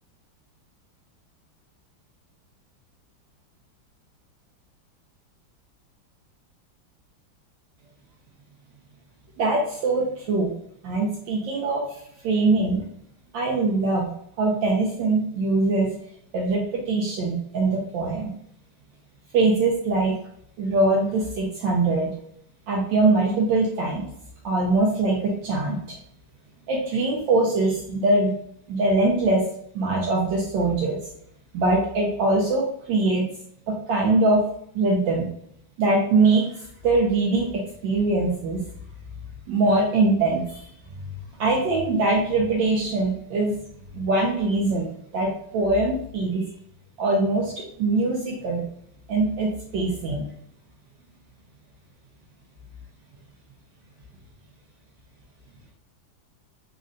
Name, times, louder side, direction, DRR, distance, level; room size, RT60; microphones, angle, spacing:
voice 1, 9.4-10.5 10.8-11.8 12.2-12.8 13.3-14.1 14.4-15.9 16.3-18.3 19.3-20.2 20.6-22.1 22.7-24.1 24.4-26.0 26.7-28.3 28.7-29.4 29.7-31.0 31.5-33.2 33.7-34.4 34.7-35.3 35.8-36.5 36.8-38.6 39.5-40.6 41.4-43.5 43.9-46.4 47.0-47.5 47.8-48.6 49.1-50.3, right 2 dB, 75° right, -2 dB, 1.3 m, -22 dB
3.7 x 2.1 x 2.5 m, 0.70 s
omnidirectional pair, 2.1 m